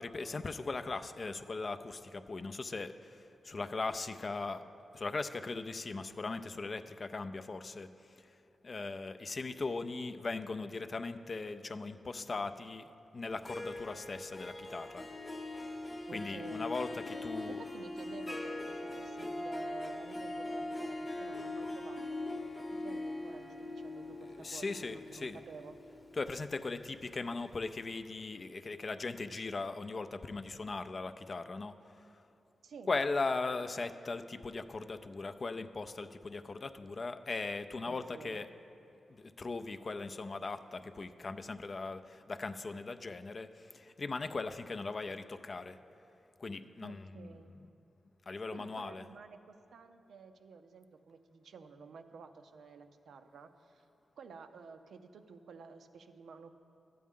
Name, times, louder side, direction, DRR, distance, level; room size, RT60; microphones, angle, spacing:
voice 1, 0.0-7.9 8.2-8.3 8.6-15.1 16.1-17.6 24.4-25.4 26.2-32.0 32.9-38.5 39.1-45.8 46.4-47.3 48.3-49.0, left 3 dB, 40° left, 10 dB, 0.3 m, -39 dB
Harp, 13.3-27.2, left 2 dB, 25° left, 0.8 m, -41 dB
voice 2, 16.1-16.7 17.5-25.7 32.6-32.9 37.9-38.5 46.8-47.5 48.5-53.9 54.2-56.5, right 5 dB, 85° right, 8 dB, 0.5 m, -52 dB
12.0 x 8.5 x 3.6 m, 2.8 s
wide cardioid pair, 105°, 0 cm